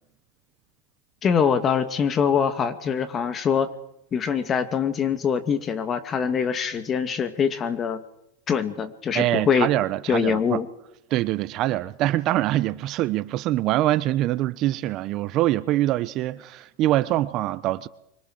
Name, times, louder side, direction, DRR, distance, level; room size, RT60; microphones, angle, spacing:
voice 1, 1.2-3.7 4.1-8.0 8.5-9.7 10.1-10.7, left 7 dB, 30° left, 2.3 m, -23 dB
voice 2, 9.1-10.6 11.1-17.9, right 15 dB, 45° right, 1.0 m, -24 dB
25.5 x 22.5 x 6.5 m
hypercardioid pair, 110°, 0 cm